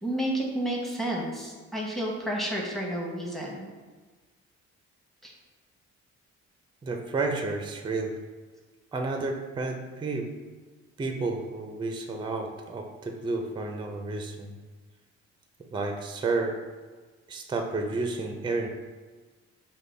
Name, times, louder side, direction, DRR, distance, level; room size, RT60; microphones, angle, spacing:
voice 1, 0.0-3.6 5.2-5.3, right 1 dB, ahead, -3 dB, 0.9 m, -31 dB
voice 2, 6.8-8.1 8.9-10.3 11.0-14.6 15.7-16.6 17.3-18.7, right 3 dB, 15° right, 4 dB, 0.4 m, -31 dB
5.1 x 2.3 x 3.2 m, 1.4 s
cardioid pair, 90°, 30 cm